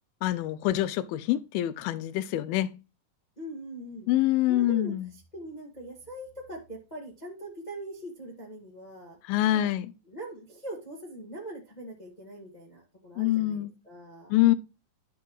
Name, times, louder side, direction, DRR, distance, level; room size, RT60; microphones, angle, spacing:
voice 1, 0.2-2.7 4.1-5.1 9.2-9.9 13.2-13.7 14.3-14.6, left 14 dB, 85° left, 2.4 m, -25 dB
voice 2, 3.4-4.1 4.5-4.9 5.3-9.2 9.5-9.7 10.1-14.3, right 1 dB, 40° left, 0.6 m, -42 dB
12.0 x 5.9 x 3.1 m
omnidirectional pair, 4.2 m